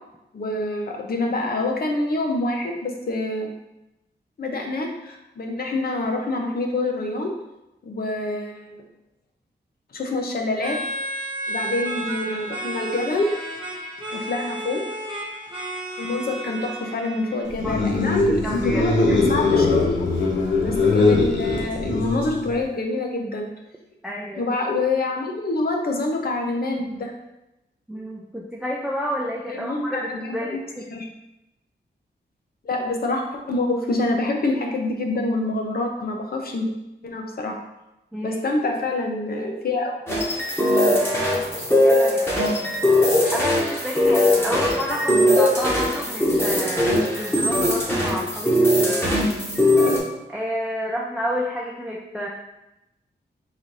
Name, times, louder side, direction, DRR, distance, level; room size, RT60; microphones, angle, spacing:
voice 1, 0.3-3.5 4.4-7.3 7.8-8.8 9.9-10.8 11.5-13.3 14.1-14.8 16.0-18.4 18.6-20.0 20.6-23.5 24.4-27.1 29.6-30.4 30.9-31.1 32.6-36.7 37.0-37.6 38.2-39.9 45.1-45.3, left 2 dB, 55° left, 1 dB, 0.7 m, -26 dB
sound 1, 10.6-17.4, right 1 dB, 25° right, 0.9 m, -32 dB
sound 2, 17.5-22.6, left 3 dB, 85° left, 1.0 m, -21 dB
voice 2, 17.6-19.2 24.0-24.5 27.9-30.9 38.1-38.4 41.8-42.3 43.3-49.2 50.3-52.3, equal, 5° right, -3 dB, 0.4 m, -30 dB
sound 3, 40.1-50.0, left 1 dB, 10° left, 1.0 m, -20 dB
4.1 x 2.6 x 4.7 m, 0.91 s
wide cardioid pair, 170°, 19 cm